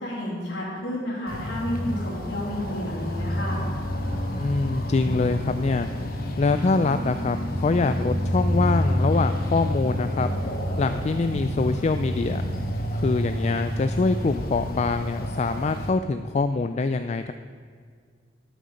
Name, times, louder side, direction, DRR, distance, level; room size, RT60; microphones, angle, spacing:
voice 1, 0.0-3.6, left 1 dB, 90° left, -9 dB, 3.3 m, -31 dB
sound 1, 1.3-15.9, equal, 55° left, 1.2 m, -28 dB
voice 2, 4.4-10.3 10.8-12.4 12.9-17.3, left 3 dB, 35° left, 9 dB, 0.3 m, -24 dB
13.0 x 6.7 x 6.4 m, 2.1 s
head